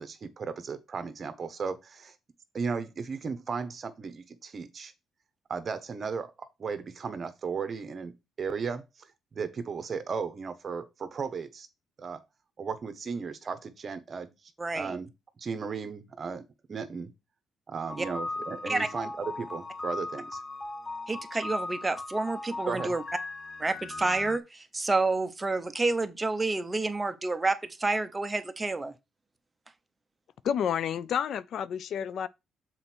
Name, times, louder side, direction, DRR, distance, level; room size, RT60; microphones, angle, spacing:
voice 1, 0.0-2.1 2.5-4.9 5.5-8.1 8.4-8.8 9.3-11.7 12.0-12.2 12.6-14.3 14.7-15.1 15.4-17.1 17.7-20.4 22.7-22.9, right 5 dB, 45° right, 1.1 m, -35 dB
voice 2, 14.6-15.0 18.0-18.1 18.7-18.9 21.1-23.0 23.6-28.9, right 3 dB, 20° right, 0.8 m, -29 dB
sound 1, 17.9-24.4, left 3 dB, 20° left, 0.7 m, -38 dB
voice 3, 30.4-32.3, left 8 dB, 65° left, 0.4 m, -30 dB
6.5 x 4.3 x 4.4 m
cardioid pair, 90°, 0 cm